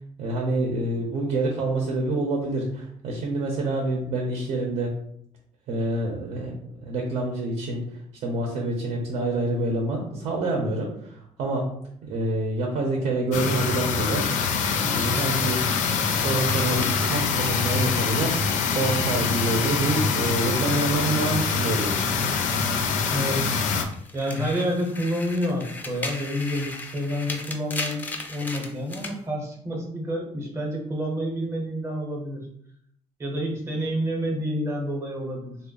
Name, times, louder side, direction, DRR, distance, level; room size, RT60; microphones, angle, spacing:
voice 1, 0.2-4.9 5.7-7.8 8.2-11.7 12.0-14.3 14.7-15.6 16.1-18.4 18.8-22.0, right 2 dB, 65° right, 1 dB, 0.6 m, -27 dB
sound 1, 13.3-23.8, left 5 dB, 75° left, 0.4 m, -24 dB
sound 2, 16.5-19.8 20.1-23.1 23.4-29.2, left 2 dB, 15° left, 0.4 m, -39 dB
voice 2, 23.1-23.5 24.1-32.4 33.2-35.6, equal, 20° right, 0 dB, 0.7 m, -29 dB
3.4 x 2.0 x 3.8 m, 0.69 s
cardioid pair, 170°, 13 cm